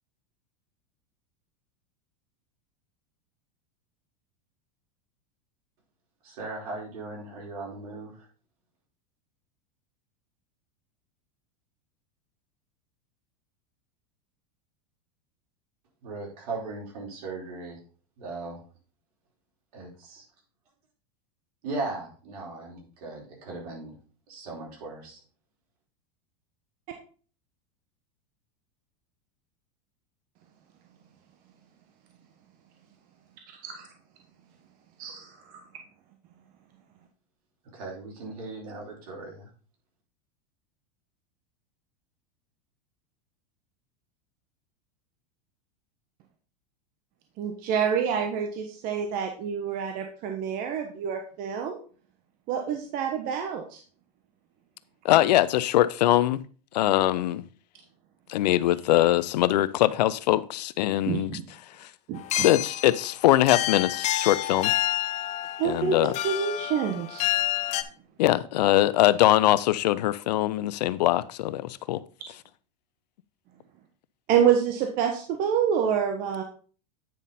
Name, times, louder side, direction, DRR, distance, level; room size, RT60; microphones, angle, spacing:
voice 1, 6.2-8.3 16.0-17.8 18.2-18.6 19.7-20.2 21.6-23.9 24.3-25.2 37.7-39.5, right 3 dB, 70° right, 4.5 m, -38 dB
voice 2, 33.5-33.9 35.0-35.6 47.4-51.8 52.5-53.8 55.1-55.2 61.1-61.4 62.1-62.5 65.6-67.3 74.3-76.4, right 8 dB, 45° right, 1.1 m, -27 dB
voice 3, 55.0-56.4 56.7-57.4 58.3-61.4 61.8-61.9 62.4-64.7 65.6-66.1 68.2-72.0, left 14 dB, 85° left, 0.6 m, -22 dB
sound 1, 62.1-67.8, left 14 dB, 35° left, 0.7 m, -29 dB
9.2 x 5.3 x 4.1 m
supercardioid pair, 135°, 21 cm